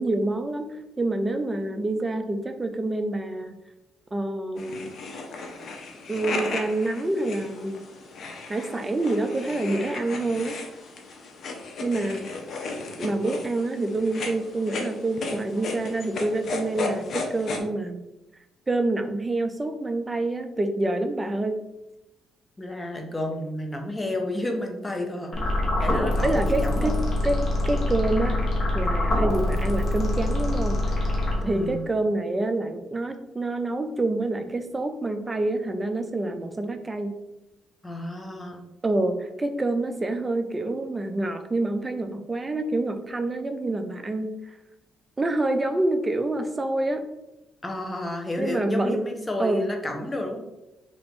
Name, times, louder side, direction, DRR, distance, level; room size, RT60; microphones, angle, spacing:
voice 1, 0.0-3.5 4.1-4.9 6.1-7.8 8.5-10.6 11.8-12.3 13.0-18.0 18.7-21.6 26.2-27.4 27.7-28.4 28.7-30.8 31.5-37.2 38.8-44.3 45.2-47.0 48.4-49.0 49.4-49.7, right 2 dB, 20° right, 7 dB, 0.4 m, -27 dB
sound 1, 4.6-17.6, left 3 dB, 60° left, 0.6 m, -35 dB
voice 2, 22.6-25.3 25.8-27.0 31.4-31.8 37.8-38.7 47.6-50.4, left 1 dB, 15° left, 3 dB, 0.6 m, -31 dB
sound 2, 25.3-31.8, left 1 dB, 40° left, 0.9 m, -25 dB
2.9 x 2.5 x 3.4 m, 0.94 s
cardioid pair, 90°, 0 cm